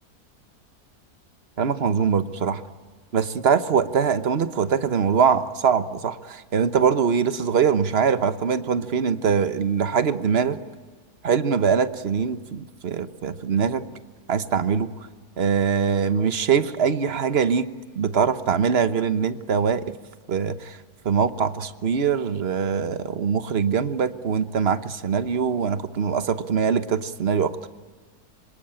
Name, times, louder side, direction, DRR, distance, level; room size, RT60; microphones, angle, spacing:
voice 1, 1.6-2.6 3.1-10.6 11.2-13.9 14.3-14.9 15.4-17.7 17.9-19.8 20.3-20.8 21.0-27.7, right 6 dB, 45° right, 12 dB, 1.2 m, -23 dB
26.5 x 25.5 x 8.9 m, 1.5 s
omnidirectional pair, 1.7 m